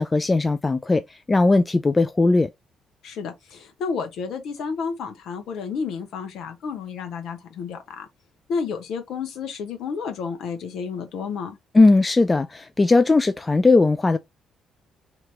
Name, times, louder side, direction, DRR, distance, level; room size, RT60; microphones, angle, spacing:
voice 1, 0.0-2.5 11.7-14.2, left 3 dB, 25° left, 0.3 m, -18 dB
voice 2, 3.0-8.1 8.5-11.6, left 5 dB, 60° left, 1.0 m, -31 dB
2.9 x 2.8 x 3.2 m
figure-of-eight pair, 40°, 0 cm